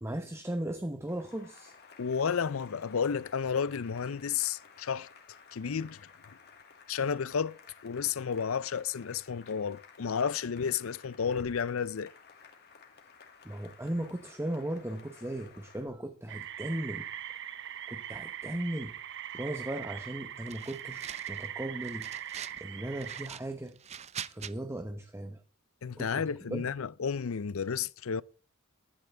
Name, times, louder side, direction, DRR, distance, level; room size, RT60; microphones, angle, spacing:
voice 1, 0.0-1.7 13.4-17.1 17.9-18.9 19.3-23.7 24.3-25.4 25.9-26.7, right 1 dB, 10° right, 0.9 m, -37 dB
Cheering / Applause, 1.1-15.9, left 5 dB, 50° left, 2.3 m, -56 dB
voice 2, 2.0-5.1 5.5-6.0 6.9-7.6 7.8-12.1 25.8-28.2, left 6 dB, 70° left, 0.5 m, -32 dB
sound 1, 16.3-23.3, right 10 dB, 55° right, 0.9 m, -41 dB
sound 2, 20.5-21.5 21.8-22.6 23.0-24.5, right 8 dB, 30° right, 0.5 m, -43 dB
15.5 x 11.5 x 3.4 m
head